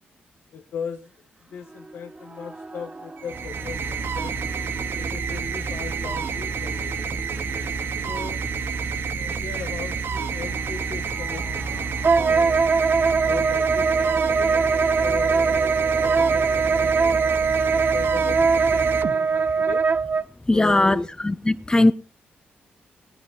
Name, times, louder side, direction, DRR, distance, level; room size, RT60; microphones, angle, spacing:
voice 1, 0.5-1.1 1.5-4.4 5.0-7.3 8.0-8.4 9.1-12.6 13.2-14.6 15.0-17.2 17.6-19.8 20.5-21.0, left 7 dB, 75° left, 1.5 m, -38 dB
sound 1, 1.5-17.5, right 2 dB, 25° right, 1.7 m, -42 dB
sound 2, 3.2-19.7, right 5 dB, 75° right, 2.1 m, -29 dB
Wind instrument woodwind instrument, 12.0-20.2, right 5 dB, 40° right, 0.8 m, -21 dB
voice 2, 20.4-21.9, left 2 dB, 20° left, 1.2 m, -19 dB
19.0 x 10.5 x 5.6 m
supercardioid pair, 50°, 4 cm